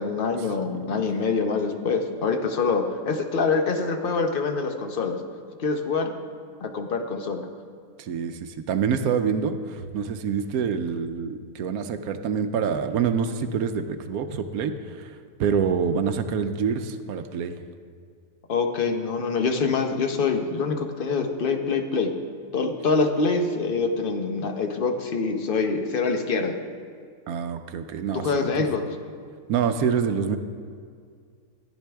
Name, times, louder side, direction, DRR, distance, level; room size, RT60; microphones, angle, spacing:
voice 1, 0.0-5.2 5.6-6.1 6.6-7.4 18.5-22.1 22.5-26.6 28.1-28.9, left 4 dB, 45° left, 5 dB, 0.8 m, -25 dB
voice 2, 0.7-1.0 8.0-17.6 27.3-28.7 29.5-30.4, right 6 dB, 75° right, 9 dB, 1.1 m, -26 dB
14.0 x 10.5 x 3.4 m, 2.1 s
omnidirectional pair, 1.6 m